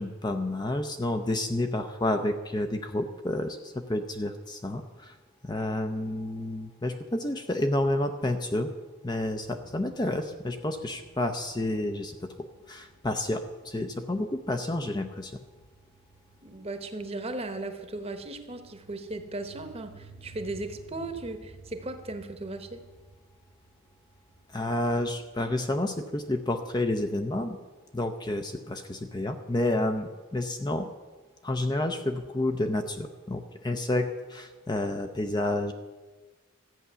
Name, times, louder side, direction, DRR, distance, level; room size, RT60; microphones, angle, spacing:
voice 1, 0.0-5.2 5.4-8.7 9.0-15.4 24.5-27.6 27.9-30.9 31.4-35.7, left 1 dB, 20° left, 6 dB, 0.6 m, -30 dB
sound 1, 9.4-26.9, right 2 dB, 65° left, 1.9 m, -55 dB
voice 2, 16.4-22.8, right 2 dB, 25° right, 8 dB, 1.0 m, -37 dB
14.0 x 8.8 x 6.8 m, 1.3 s
head